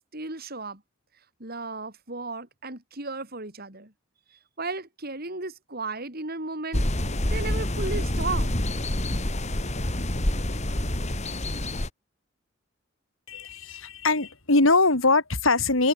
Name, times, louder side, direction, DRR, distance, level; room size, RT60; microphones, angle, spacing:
voice 1, 0.1-0.8 1.4-3.9 4.3-6.9 7.3-8.6, right 3 dB, 50° right, 5.4 m, -34 dB
sound 1, 6.7-11.9, left 1 dB, 35° left, 2.9 m, -27 dB
voice 2, 13.3-15.9, left 3 dB, 85° left, 3.5 m, -22 dB
head